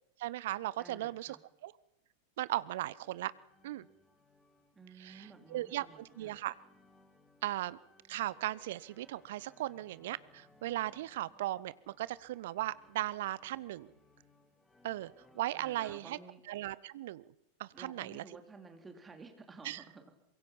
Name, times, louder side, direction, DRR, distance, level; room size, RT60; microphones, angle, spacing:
voice 1, 0.2-1.4 1.6-1.7 2.4-3.3 3.6-3.9 5.0-6.5 7.4-7.8 8.1-13.9 14.8-16.2 16.5-17.2 17.6-18.2 19.6-19.8, right 15 dB, 55° right, 19 dB, 0.7 m, -37 dB
voice 2, 0.8-1.4 4.7-6.4 15.5-16.4 17.7-20.1, right 3 dB, 15° right, 5 dB, 3.3 m, -53 dB
sound 1, 2.9-15.4, left 2 dB, 10° left, 2.5 m, -65 dB
24.5 x 22.5 x 5.8 m, 0.86 s
figure-of-eight pair, 90°, 0 cm